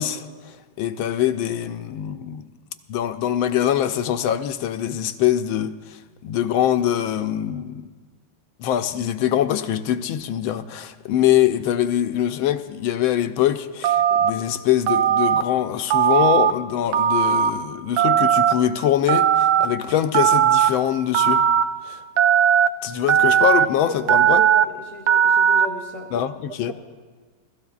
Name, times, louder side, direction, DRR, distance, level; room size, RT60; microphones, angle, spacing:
voice 1, 0.0-2.5 2.9-6.0 6.2-7.9 8.6-21.4 21.8-22.0 22.8-24.4 26.1-26.7, left 11 dB, 75° left, 1.4 m, -23 dB
Telephone, 13.8-14.3 14.9-15.4 15.9-16.5 16.9-17.5 18.0-18.5 19.1-19.7 20.1-20.7 21.1-21.6 22.2-22.7 23.1-23.7 24.1-24.6 25.1-25.7, right 9 dB, 85° right, 1.6 m, -17 dB
voice 2, 24.0-26.1, equal, 40° right, 0.9 m, -35 dB
28.5 x 16.5 x 2.4 m
omnidirectional pair, 2.4 m